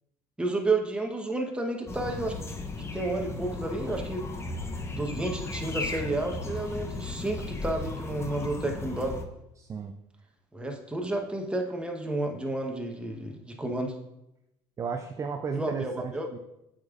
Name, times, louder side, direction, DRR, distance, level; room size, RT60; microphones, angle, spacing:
voice 1, 0.4-2.4 2.9-4.3 4.9-9.2 10.5-14.0 15.5-16.3, right 2 dB, 10° right, 2 dB, 0.9 m, -31 dB
sound 1, 1.9-9.3, left 2 dB, 25° left, 0.7 m, -35 dB
voice 2, 9.6-10.0 14.8-16.4, right 5 dB, 30° right, 6 dB, 0.4 m, -34 dB
8.1 x 5.1 x 2.4 m, 0.86 s
cardioid pair, 105°, 11 cm